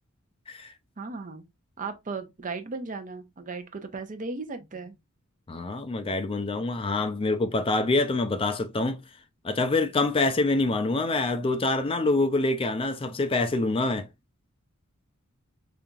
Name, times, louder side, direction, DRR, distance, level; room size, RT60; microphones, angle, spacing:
voice 1, 1.0-1.4 1.8-5.0, right 4 dB, 40° right, 0.7 m, -36 dB
voice 2, 5.5-9.0 9.4-14.1, left 2 dB, 25° left, 0.4 m, -26 dB
5.1 x 2.8 x 2.3 m
head